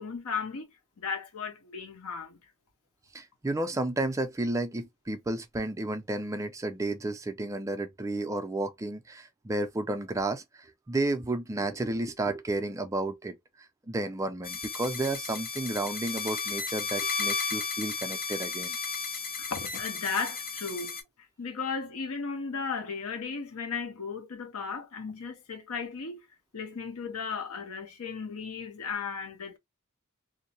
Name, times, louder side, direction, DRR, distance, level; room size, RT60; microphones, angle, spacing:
voice 1, 0.0-2.4 19.4-21.0 21.4-26.2 26.5-29.6, left 5 dB, 80° left, 0.7 m, -35 dB
voice 2, 3.1-13.4 13.9-18.8, right 2 dB, 15° right, 0.3 m, -32 dB
sound 1, 14.4-21.0, left 5 dB, 40° left, 0.6 m, -34 dB
2.6 x 2.0 x 2.7 m
head